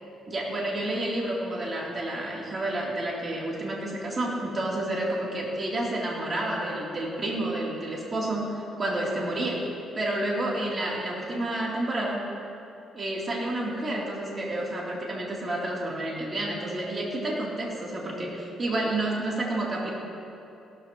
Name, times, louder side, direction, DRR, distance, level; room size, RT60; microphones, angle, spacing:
voice 1, 0.3-9.6 10.0-12.3 12.9-19.9, right 1 dB, 35° right, -4 dB, 3.6 m, -30 dB
17.5 x 13.5 x 3.2 m, 2.8 s
cardioid pair, 90°, 0 cm